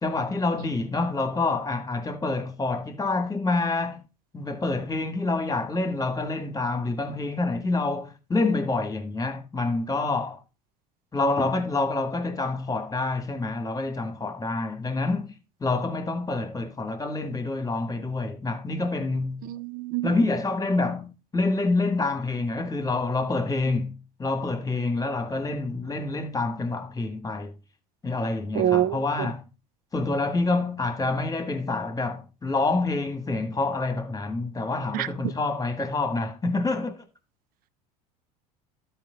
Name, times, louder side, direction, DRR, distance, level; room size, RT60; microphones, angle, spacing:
voice 1, 0.0-4.0 4.3-10.4 11.1-15.3 15.6-19.4 20.0-27.5 28.0-29.4 29.9-37.0, left 3 dB, 20° left, 1.7 m, -27 dB
voice 2, 19.5-20.1 28.5-29.3 34.9-35.1, right 12 dB, 45° right, 0.5 m, -26 dB
13.0 x 4.4 x 3.9 m
hypercardioid pair, 75°, 20 cm